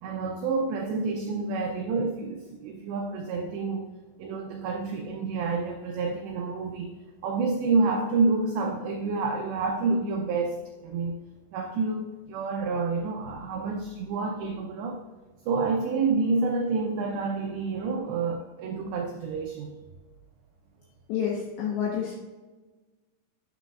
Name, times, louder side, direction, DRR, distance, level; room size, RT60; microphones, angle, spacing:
voice 1, 0.0-3.9 4.2-7.0 7.2-10.6 10.8-11.1 11.5-15.0 15.5-19.8, right 4 dB, 85° right, 2 dB, 2.5 m, -28 dB
voice 2, 21.1-22.1, left 8 dB, 70° left, -2 dB, 3.0 m, -28 dB
12.0 x 8.2 x 2.4 m, 1.2 s
omnidirectional pair, 5.9 m